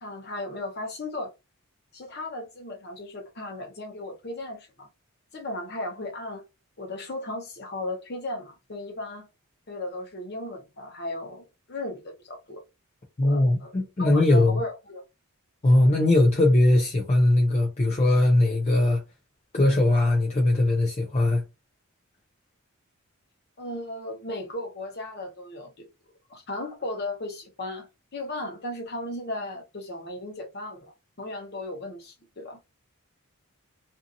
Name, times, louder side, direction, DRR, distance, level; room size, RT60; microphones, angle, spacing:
voice 1, 0.0-1.3 1.9-4.9 5.3-6.4 6.8-9.3 9.7-12.6 13.2-13.7 14.0-15.0 23.6-25.8 26.3-27.9 28.1-32.6, left 2 dB, 45° left, 0.9 m, -36 dB
voice 2, 13.2-14.6 15.6-19.0 19.5-21.4, left 1 dB, 30° left, 0.5 m, -20 dB
2.7 x 2.5 x 2.5 m
head